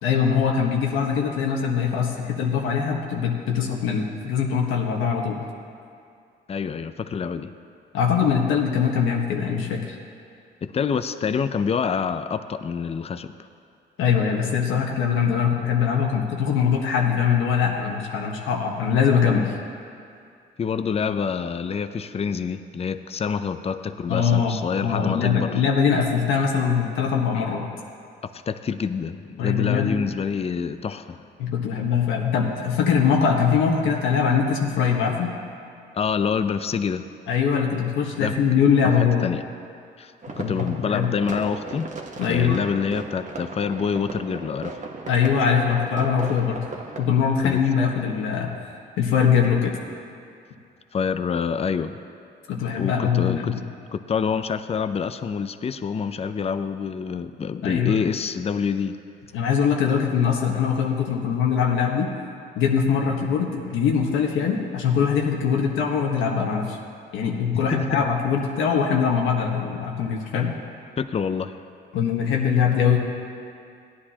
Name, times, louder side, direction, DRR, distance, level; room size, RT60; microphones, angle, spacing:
voice 1, 0.0-5.4 7.9-10.0 14.0-19.5 24.1-27.7 29.4-30.0 31.4-35.3 37.3-39.3 40.4-41.1 42.2-42.6 45.1-46.6 47.0-48.5 49.0-49.7 52.5-53.6 57.6-58.0 59.3-62.1 62.5-66.8 67.1-70.5 71.9-73.0, left 7 dB, 90° left, 0 dB, 1.4 m, -22 dB
voice 2, 6.5-7.5 10.6-13.3 20.6-25.6 28.3-31.3 35.9-37.1 38.2-38.3 39.0-39.4 40.0-41.9 42.3-44.8 47.4-47.6 50.9-52.0 52.8-53.6 53.9-59.0 67.7-68.0 71.0-71.6, left 6 dB, 30° left, 11 dB, 0.5 m, -27 dB
sound 1, 40.2-47.1, right 3 dB, 40° right, 1.2 m, -36 dB
17.0 x 9.9 x 2.9 m, 2.5 s
cardioid pair, 90°, 20 cm